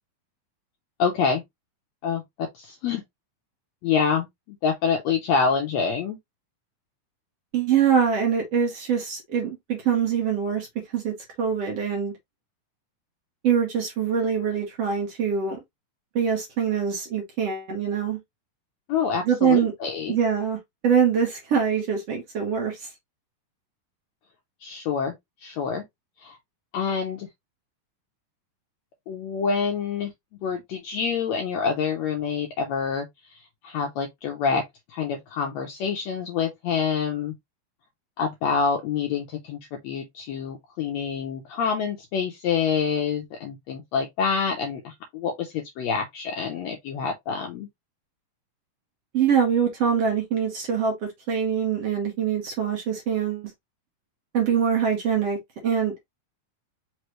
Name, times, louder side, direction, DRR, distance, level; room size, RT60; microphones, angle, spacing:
voice 1, 1.0-1.4 2.0-3.0 3.8-6.2 18.9-20.2 24.6-25.1 25.4-25.8 26.2-26.4 26.7-27.3 29.1-30.1 30.4-33.4 33.6-34.6 34.9-37.3 38.2-47.7, left 6 dB, 75° left, 1.6 m, -27 dB
voice 2, 7.5-10.7 10.9-12.1 13.4-15.6 16.2-18.2 19.3-19.7 20.1-20.6 20.8-22.9 49.1-50.9 51.3-53.5 54.3-55.4 55.6-56.2, right 7 dB, 60° right, 1.9 m, -24 dB
5.2 x 3.1 x 3.0 m
omnidirectional pair, 3.9 m